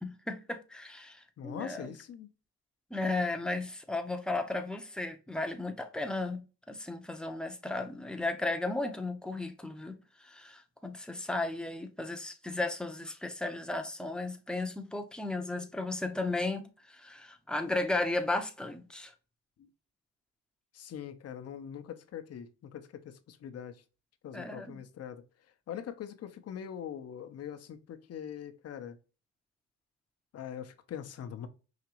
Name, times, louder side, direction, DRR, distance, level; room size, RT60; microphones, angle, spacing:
voice 1, 0.0-1.9 2.9-19.1 24.3-24.8, left 2 dB, 5° left, 0.8 m, -35 dB
voice 2, 1.4-2.3 19.6-19.7 20.7-23.8 24.2-25.2 25.7-29.0 30.3-31.5, left 9 dB, 55° left, 0.8 m, -42 dB
4.9 x 2.9 x 2.9 m
cardioid pair, 90°, 30 cm